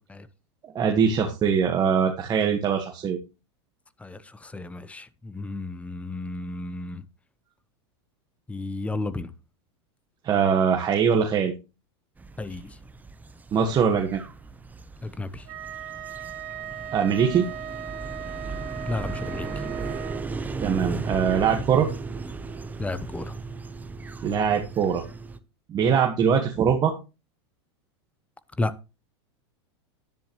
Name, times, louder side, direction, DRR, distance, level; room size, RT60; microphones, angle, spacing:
voice 1, 0.7-3.2 10.2-11.5 13.5-14.2 16.9-17.5 20.6-21.9 24.2-25.0 25.7-26.9, right 7 dB, 30° right, 1.6 m, -22 dB
voice 2, 4.0-7.0 8.5-9.3 12.4-12.8 15.0-15.5 18.9-19.5 22.8-23.4 28.6-28.7, left 2 dB, 10° left, 0.9 m, -32 dB
sound 1, 12.2-25.4, right 4 dB, 10° right, 0.9 m, -36 dB
Wind instrument woodwind instrument, 15.5-20.3, right 8 dB, 55° right, 2.1 m, -38 dB
10.5 x 10.0 x 3.2 m
hypercardioid pair, 120°, 14 cm